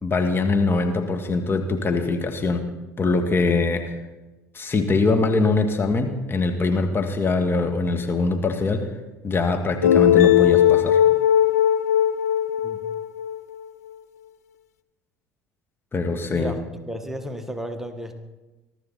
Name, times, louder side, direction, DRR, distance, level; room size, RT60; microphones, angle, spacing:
voice 1, 0.0-2.6 3.0-3.9 4.5-8.9 9.2-11.0 15.9-16.5, left 3 dB, 25° left, 4 dB, 2.0 m, -22 dB
sound 1, 9.8-13.5, left 10 dB, 80° left, 0.7 m, -18 dB
voice 2, 16.9-18.2, equal, 5° right, 6 dB, 1.8 m, -33 dB
22.0 x 12.5 x 4.3 m, 1.1 s
hypercardioid pair, 65°, 8 cm